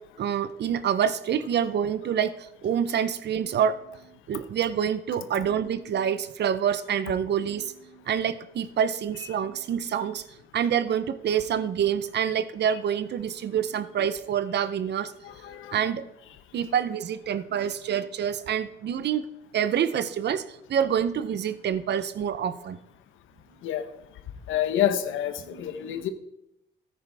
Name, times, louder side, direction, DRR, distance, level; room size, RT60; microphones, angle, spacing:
voice 1, 0.2-10.2 10.5-15.1 15.7-16.0 16.5-19.2 19.5-22.8 25.4-26.1, right 8 dB, 60° right, 0.7 m, -27 dB
voice 2, 15.2-15.7 23.6-23.9 24.5-26.1, left 10 dB, 80° left, 1.0 m, -28 dB
13.5 x 9.5 x 3.5 m
cardioid pair, 90°, 20 cm